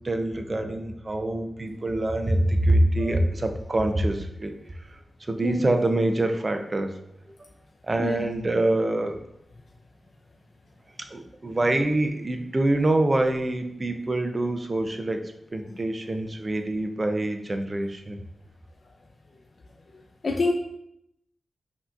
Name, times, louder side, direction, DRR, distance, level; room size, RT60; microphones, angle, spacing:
voice 1, 0.0-7.0 7.4-7.5 7.8-9.2 11.1-18.2, right 1 dB, 40° right, 6 dB, 0.5 m, -25 dB
voice 2, 5.4-5.7 8.0-8.2 20.2-20.5, left 3 dB, 60° left, 1 dB, 0.4 m, -25 dB
5.5 x 2.8 x 2.5 m, 0.77 s
cardioid pair, 45°, 0 cm